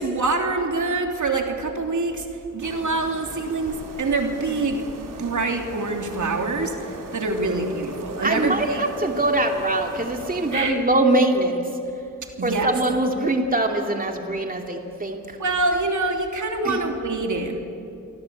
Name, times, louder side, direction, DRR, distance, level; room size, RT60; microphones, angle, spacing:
voice 1, 0.0-2.2 2.5-4.8 5.2-8.8 10.5-10.8 12.4-12.8 15.4-17.6, right 3 dB, 65° right, 3 dB, 3.3 m, -25 dB
sound 1, 2.6-10.7, right 3 dB, 80° right, 3.3 m, -38 dB
voice 2, 8.2-11.6 12.4-15.2 16.6-16.8, right 2 dB, 25° right, 3 dB, 2.7 m, -23 dB
28.5 x 23.5 x 8.6 m, 2.6 s
cardioid pair, 70°, 32 cm